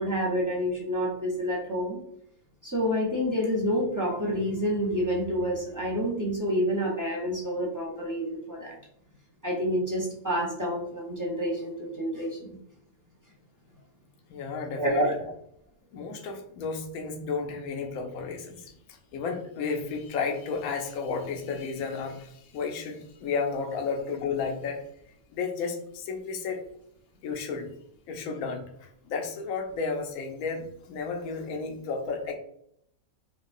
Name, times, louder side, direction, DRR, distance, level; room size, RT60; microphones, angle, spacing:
voice 1, 0.0-2.0 2.6-8.7 9.4-12.6 14.8-15.2, equal, 25° right, -4 dB, 0.4 m, -28 dB
voice 2, 14.3-15.1 15.9-24.8 25.3-26.6 27.2-27.7 28.1-32.3, left 5 dB, 75° left, 3 dB, 1.1 m, -33 dB
4.8 x 2.2 x 2.5 m, 0.72 s
omnidirectional pair, 1.5 m